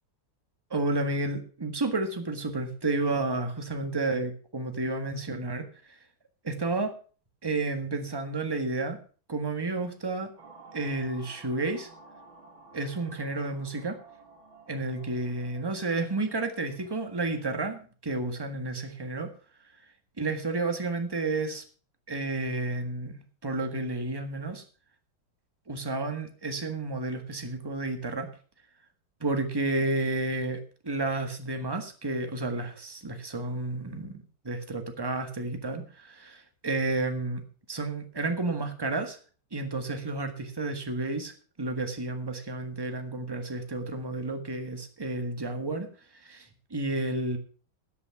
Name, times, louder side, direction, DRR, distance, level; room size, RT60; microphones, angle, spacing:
voice 1, 0.7-5.7 6.4-6.9 7.4-9.0 9.3-10.3 10.7-11.9 12.7-14.0 14.7-19.3 20.2-21.6 22.1-23.1 23.4-24.6 25.7-28.3 29.2-37.4 37.7-39.2 39.5-45.9 46.2-47.4, right 2 dB, 15° right, 6 dB, 1.5 m, -31 dB
sound 1, 10.4-17.4, right 3 dB, 90° right, 2.9 m, -53 dB
12.5 x 8.7 x 5.9 m, 0.40 s
omnidirectional pair, 2.1 m